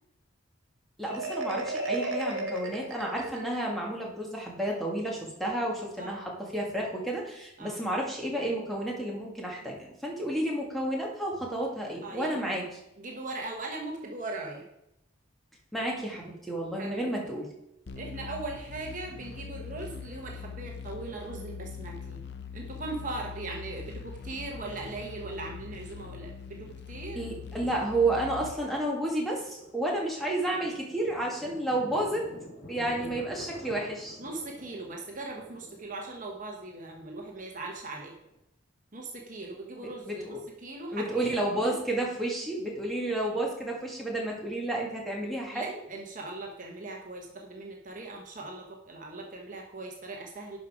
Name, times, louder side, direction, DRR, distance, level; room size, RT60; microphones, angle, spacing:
voice 1, 1.0-9.8 10.0-12.6 15.7-17.5 27.1-32.3 32.7-34.2 39.8-40.4 40.9-45.7, right 1 dB, ahead, -2 dB, 1.8 m, -31 dB
Marimba xylophone, 1.1-3.8, right 2 dB, 70° right, 1.6 m, -34 dB
voice 2, 12.0-12.5 13.0-14.7 16.8-17.0 18.0-22.2 22.5-27.2 34.2-38.1 38.9-41.8 45.5-50.6, right 2 dB, 40° right, 0 dB, 1.1 m, -39 dB
sound 1, 17.9-28.5, left 5 dB, 55° left, 0.6 m, -42 dB
Thunder, 26.0-38.4, equal, 85° left, 3.6 m, -49 dB
11.0 x 5.2 x 4.9 m, 0.83 s
head